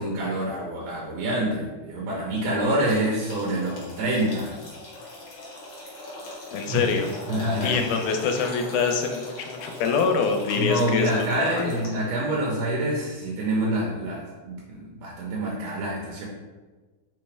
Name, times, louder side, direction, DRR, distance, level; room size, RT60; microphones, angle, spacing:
voice 1, 0.0-4.6 6.7-6.9 7.3-7.8 10.5-16.3, right 1 dB, 75° right, -4 dB, 1.9 m, -26 dB
sound 1, 2.8-12.2, left 1 dB, 55° left, 1.6 m, -40 dB
voice 2, 6.5-7.1 7.6-11.8, left 5 dB, 90° left, 4 dB, 2.1 m, -25 dB
4.8 x 3.1 x 3.3 m, 1.3 s
omnidirectional pair, 3.5 m